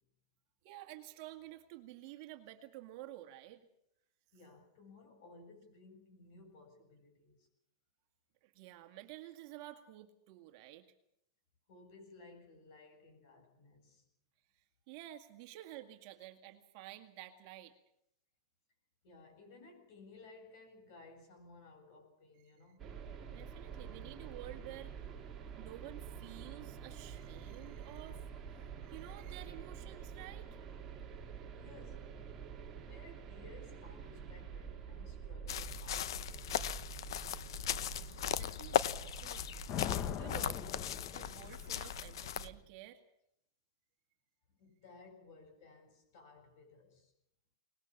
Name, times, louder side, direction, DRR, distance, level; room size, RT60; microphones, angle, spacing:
voice 1, 0.6-3.7 8.4-10.9 14.6-17.7 22.3-22.9 23.3-25.0 25.6-30.6 37.9-40.6 41.1-43.0, right 14 dB, 40° right, 2.0 m, -52 dB
voice 2, 4.3-7.5 11.7-14.0 19.0-23.0 31.5-32.3 32.7-36.8 44.6-47.1, left 3 dB, 45° left, 7.6 m, -58 dB
sound 1, 22.8-42.6, right 7 dB, 15° right, 3.2 m, -48 dB
sound 2, 35.5-42.5, left 10 dB, 70° left, 0.9 m, -38 dB
Thunder, 39.7-41.9, left 9 dB, 25° left, 1.0 m, -40 dB
23.5 x 20.5 x 7.2 m
supercardioid pair, 165°, 2 cm